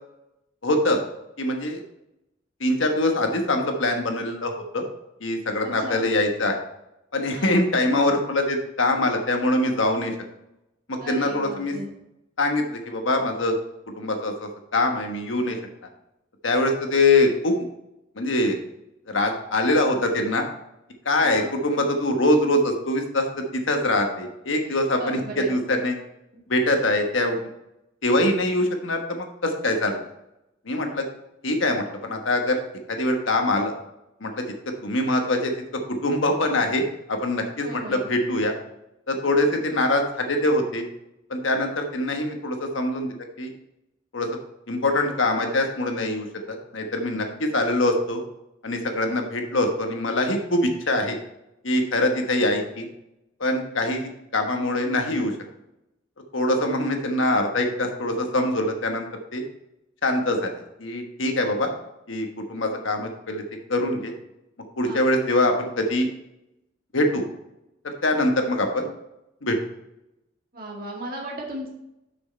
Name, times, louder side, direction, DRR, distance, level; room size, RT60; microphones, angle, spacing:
voice 1, 0.6-1.0 1.4-1.8 2.6-4.8 5.2-6.5 7.1-10.1 10.9-11.7 12.4-13.5 14.0-15.6 16.4-17.6 18.2-18.6 19.1-20.4 21.0-23.3 23.7-26.0 26.5-27.4 28.0-30.0 30.6-31.0 31.4-32.6 32.9-33.7 34.2-34.5 34.8-35.5 35.9-38.5 39.1-40.8 41.3-43.5 44.1-44.3 44.7-48.2 48.6-51.2 51.6-52.9 53.4-55.3 56.3-59.4 60.0-60.5 60.8-61.7 62.1-63.4 63.7-64.1 64.8-66.1 66.9-67.2 67.8-68.9 69.4-69.6, left 1 dB, 75° left, 4 dB, 1.3 m, -23 dB
voice 2, 5.6-6.1 7.3-7.6 11.0-11.9 21.2-21.6 24.6-25.6 37.6-38.1 64.8-65.1 70.5-71.7, right 1 dB, 45° right, -2 dB, 2.0 m, -36 dB
6.6 x 6.3 x 4.4 m, 0.87 s
head